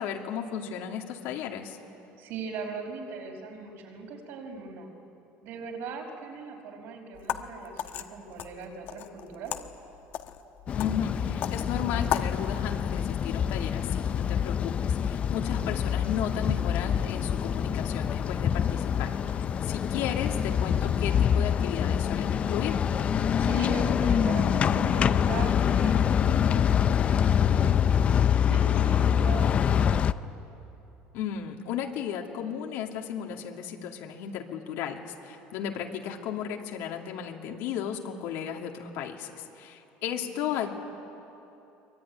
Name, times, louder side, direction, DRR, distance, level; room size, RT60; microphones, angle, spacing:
voice 1, 0.0-1.8 10.7-22.8 31.1-40.7, left 8 dB, 70° left, 2 dB, 2.6 m, -35 dB
voice 2, 2.2-4.9 5.4-9.6 19.6-20.1 23.3-28.0 28.5-30.1 40.1-40.7, right 4 dB, 60° right, 1 dB, 5.2 m, -40 dB
sound 1, 7.1-12.4, left 10 dB, 50° left, 1.2 m, -36 dB
sound 2, 10.7-30.1, left 8 dB, 30° left, 0.5 m, -25 dB
24.5 x 23.5 x 9.8 m, 3.0 s
cardioid pair, 165°, 4 cm